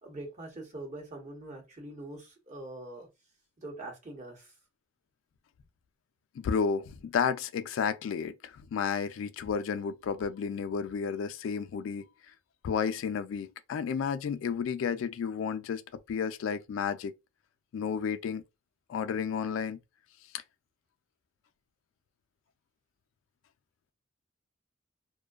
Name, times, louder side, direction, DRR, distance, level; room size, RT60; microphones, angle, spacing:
voice 1, 0.0-3.1 3.6-4.5, right 2 dB, 40° right, 0.9 m, -43 dB
voice 2, 6.4-8.3 8.7-12.0 12.6-15.8 16.1-17.1 17.7-18.4 18.9-19.8, left 6 dB, 85° left, 0.3 m, -31 dB
2.5 x 2.1 x 2.3 m
head